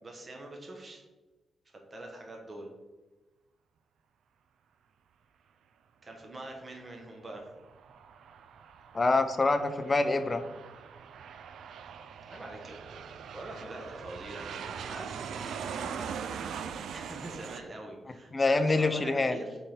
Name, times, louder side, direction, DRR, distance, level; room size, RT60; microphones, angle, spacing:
voice 1, 0.0-1.0 1.9-2.7 6.0-7.5 12.3-13.0 13.3-16.2 16.8-19.6, right 2 dB, 30° right, 1 dB, 1.0 m, -44 dB
Aircraft, 7.4-17.6, right 7 dB, 85° right, 0.4 m, -41 dB
voice 2, 8.9-10.4 18.3-19.4, left 3 dB, 25° left, 8 dB, 0.5 m, -25 dB
6.6 x 3.4 x 5.7 m, 1.2 s
wide cardioid pair, 155°, 0 cm